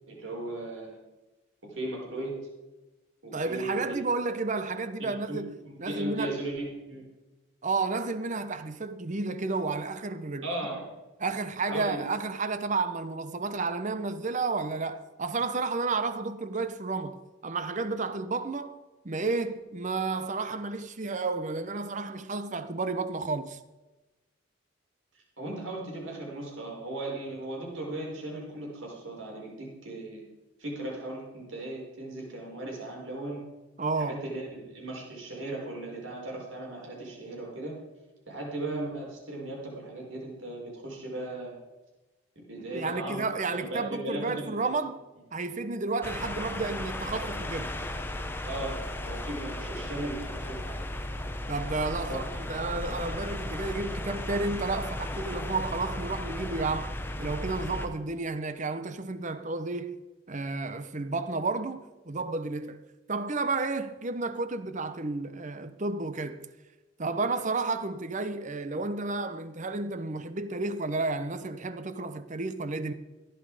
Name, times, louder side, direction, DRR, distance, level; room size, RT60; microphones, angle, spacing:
voice 1, 0.1-1.0 1.6-2.4 3.2-4.0 5.0-7.0 10.4-10.9 11.6-12.0 25.4-30.2 30.6-33.4 34.0-37.8 38.3-41.5 42.3-43.3 43.6-44.7 48.4-50.8 52.0-52.2 52.6-52.9, right 2 dB, 70° right, 5.1 m, -37 dB
voice 2, 3.3-6.4 7.6-10.4 11.2-18.8 19.0-23.6 33.8-34.2 42.6-45.0 45.3-47.7 51.5-60.0 60.3-62.8 63.1-66.5 67.0-72.9, right 3 dB, 35° right, 0.8 m, -32 dB
sound 1, 46.0-57.9, left 1 dB, 10° left, 0.9 m, -35 dB
15.0 x 11.0 x 4.9 m
head